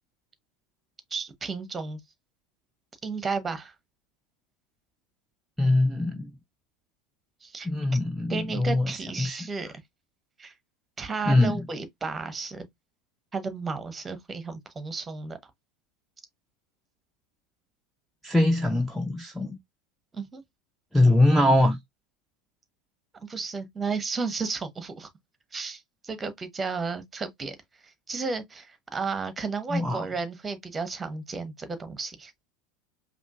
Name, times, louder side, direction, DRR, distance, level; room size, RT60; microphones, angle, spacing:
voice 1, 1.1-2.0 3.0-3.7 7.4-7.7 8.3-9.7 10.4-10.5 11.0-12.7 13.3-15.5 20.1-20.4 23.2-25.1 25.5-27.6 27.8-32.3, right 4 dB, 20° right, 1.1 m, -33 dB
voice 2, 5.6-6.3 7.6-8.9 9.2-9.4 11.2-11.6 18.2-19.6 20.9-21.8 29.7-30.1, left 1 dB, ahead, 0.7 m, -22 dB
5.0 x 2.8 x 2.4 m
figure-of-eight pair, 80°, 0 cm